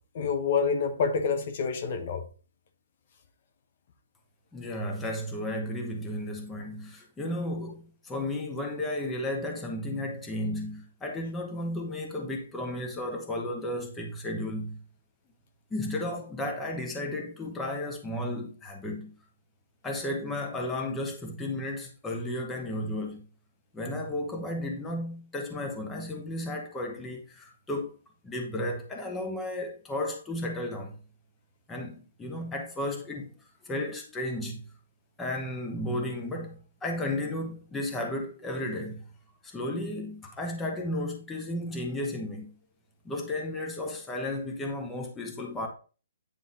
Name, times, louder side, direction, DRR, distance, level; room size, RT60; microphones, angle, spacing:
voice 1, 0.1-2.2, left 5 dB, 45° left, 1.0 m, -27 dB
voice 2, 4.5-14.8 15.7-19.1 19.8-23.3 23.7-27.9 28.2-31.0 31.7-33.3 33.6-34.6 35.2-39.0 39.4-42.5 43.0-45.7, left 1 dB, 10° left, 1.1 m, -33 dB
9.3 x 3.6 x 4.2 m
hypercardioid pair, 160°, 0 cm